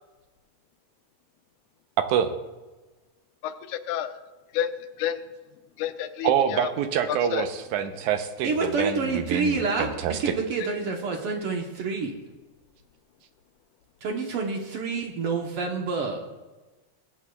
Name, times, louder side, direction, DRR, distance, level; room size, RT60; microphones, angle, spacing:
voice 1, 3.4-4.2 4.5-4.7 5.0-5.2 5.8-6.7 7.1-7.5, left 10 dB, 85° left, 9 dB, 2.2 m, -29 dB
voice 2, 6.2-8.5 8.8-9.6 10.0-10.3, right 9 dB, 90° right, 8 dB, 2.2 m, -25 dB
voice 3, 8.4-12.1 14.0-16.2, right 4 dB, 60° right, 2 dB, 1.6 m, -28 dB
22.0 x 8.3 x 2.3 m, 1.2 s
omnidirectional pair, 3.5 m